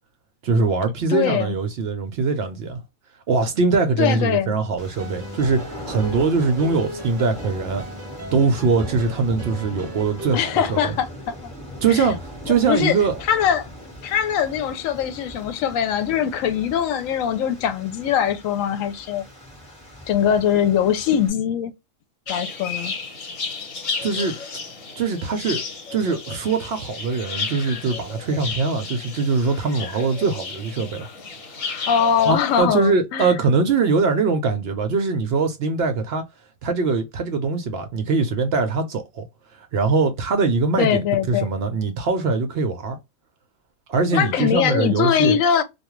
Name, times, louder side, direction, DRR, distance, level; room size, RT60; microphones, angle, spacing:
voice 1, 0.4-2.8 3.3-7.8 8.3-10.9 11.8-13.1 24.0-24.3 25.0-25.6 25.9-31.1 32.2-36.2 36.6-39.3 39.5-43.0 43.9-45.4, right 4 dB, 65° right, 0.7 m, -22 dB
voice 2, 1.1-1.5 4.0-4.5 10.3-11.5 11.9-12.1 12.5-13.0 13.3-13.7 14.0-19.2 20.1-21.7 22.3-22.9 31.9-33.3 40.8-41.5 44.1-45.6, left 8 dB, 85° left, 1.0 m, -22 dB
sound 1, 4.8-21.3, equal, 5° left, 1.0 m, -40 dB
sound 2, 4.9-11.0, equal, 25° right, 0.3 m, -37 dB
sound 3, 22.3-32.6, left 4 dB, 60° left, 1.2 m, -33 dB
2.3 x 2.3 x 2.9 m
omnidirectional pair, 1.4 m